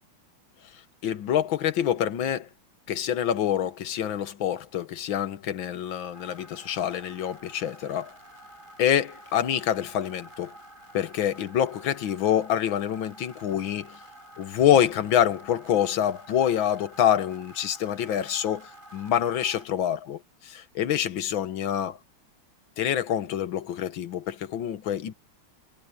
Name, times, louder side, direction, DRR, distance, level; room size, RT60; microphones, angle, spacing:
voice 1, 1.0-2.5 2.9-8.1 8.8-10.5 10.9-14.0 14.4-22.0 22.8-25.1, left 10 dB, 70° left, 1.8 m, -26 dB
sound 1, 6.1-19.7, right 1 dB, 20° right, 6.6 m, -49 dB
omnidirectional pair, 2.3 m